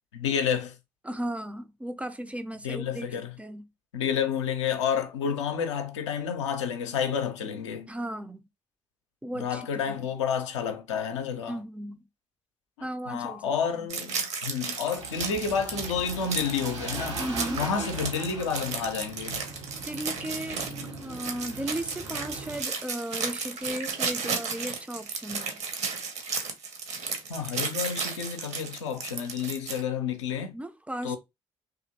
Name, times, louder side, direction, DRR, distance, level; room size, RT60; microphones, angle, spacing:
voice 1, 0.1-0.8 2.6-3.3 3.9-7.9 9.3-11.6 12.8-17.2 17.6-19.4 27.3-30.5 31.0-31.2, left 7 dB, 75° left, 0.4 m, -30 dB
voice 2, 1.0-3.1 3.4-3.6 7.9-8.5 9.2-10.1 11.5-12.0 12.8-13.4 17.2-17.6 19.9-25.5 30.5-31.2, right 1 dB, 10° right, 0.4 m, -35 dB
sound 1, 13.9-29.8, right 5 dB, 50° right, 0.8 m, -34 dB
sound 2, 15.0-22.6, right 2 dB, 80° right, 0.9 m, -40 dB
2.7 x 2.5 x 2.7 m
figure-of-eight pair, 45°, 15 cm